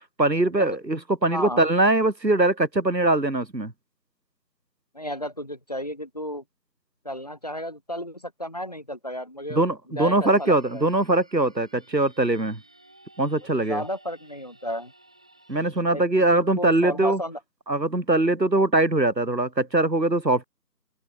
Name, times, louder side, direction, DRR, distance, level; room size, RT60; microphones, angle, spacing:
voice 1, 0.2-3.7 9.5-12.6 13.2-13.8 15.5-17.2 17.7-20.4, right 2 dB, 85° right, 2.9 m, -22 dB
voice 2, 1.2-1.6 4.9-6.4 7.0-10.8 13.4-14.9 15.9-16.0 16.3-17.4, equal, 25° left, 2.7 m, -33 dB
sound 1, 10.2-15.8, right 1 dB, 5° right, 3.1 m, -55 dB
open air
figure-of-eight pair, 170°, 49 cm